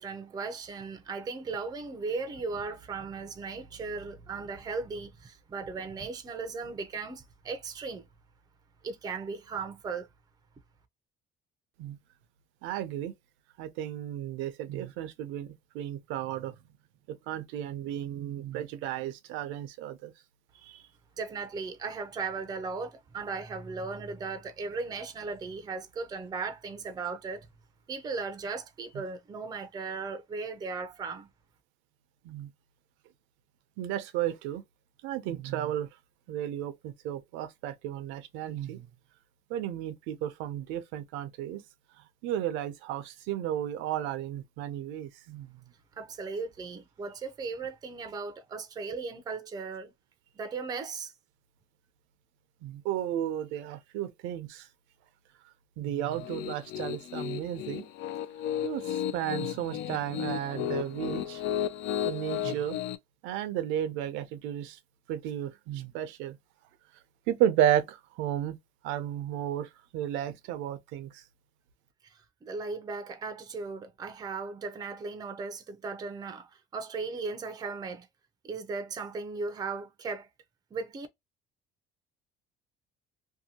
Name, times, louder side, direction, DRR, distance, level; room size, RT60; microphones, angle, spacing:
voice 1, 0.0-8.0 8.8-10.1 21.2-27.5 27.9-31.3 46.0-49.9 50.3-51.1 72.0-78.1 78.4-80.3 80.7-81.1, right 4 dB, 20° right, 0.4 m, -37 dB
voice 2, 12.6-13.1 13.6-16.6 17.1-20.1 20.6-20.8 32.2-32.5 33.8-34.6 35.0-35.9 36.3-38.9 39.5-41.6 42.2-45.5 52.6-54.7 55.8-57.9 58.6-61.4 62.0-62.8 63.2-64.8 65.1-66.4 67.3-68.6 68.8-71.2, right 11 dB, 90° right, 0.5 m, -33 dB
Piano, 56.1-63.0, left 10 dB, 75° left, 0.4 m, -34 dB
2.7 x 2.2 x 2.7 m
cardioid pair, 135°, 19 cm